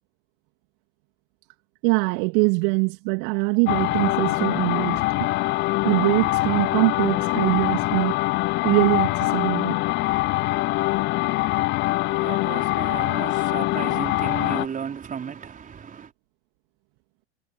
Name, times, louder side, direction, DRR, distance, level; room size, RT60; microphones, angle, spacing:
voice 1, 1.8-5.2 5.8-8.2 8.6-9.8, right 38 dB, 55° right, 2.7 m, -23 dB
sound 1, 3.7-14.7, left 20 dB, 35° left, 0.5 m, -24 dB
voice 2, 12.1-16.1, right 7 dB, 25° right, 4.3 m, -34 dB
figure-of-eight pair, 85°, 32 cm